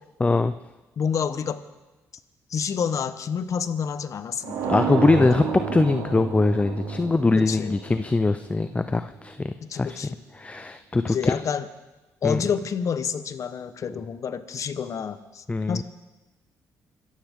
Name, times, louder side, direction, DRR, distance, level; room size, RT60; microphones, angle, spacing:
voice 1, 0.2-0.5 4.7-5.4 5.7-10.0 10.4-11.3 12.2-12.5 15.5-15.8, left 3 dB, 20° left, 11 dB, 0.6 m, -22 dB
voice 2, 1.0-1.6 2.5-4.8 5.2-5.4 7.3-7.7 9.6-10.2 11.0-11.7 12.2-15.8, left 7 dB, 55° left, 12 dB, 1.2 m, -29 dB
sound 1, 4.4-9.2, right 4 dB, 85° right, 2.9 m, -30 dB
26.0 x 14.5 x 3.8 m, 1.1 s
supercardioid pair, 70°, 6 cm